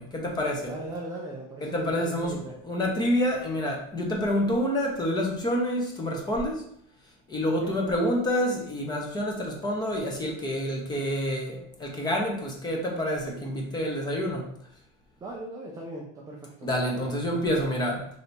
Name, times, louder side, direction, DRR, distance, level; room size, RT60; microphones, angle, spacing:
voice 1, 0.0-0.7 1.6-2.4 2.6-6.6 7.3-14.5 16.6-18.1, equal, 15° left, 0 dB, 0.7 m, -28 dB
voice 2, 0.7-2.6 7.6-7.9 15.2-16.7, right 2 dB, 10° right, -2 dB, 0.3 m, -38 dB
3.4 x 2.7 x 4.0 m, 0.68 s
supercardioid pair, 150°, 31 cm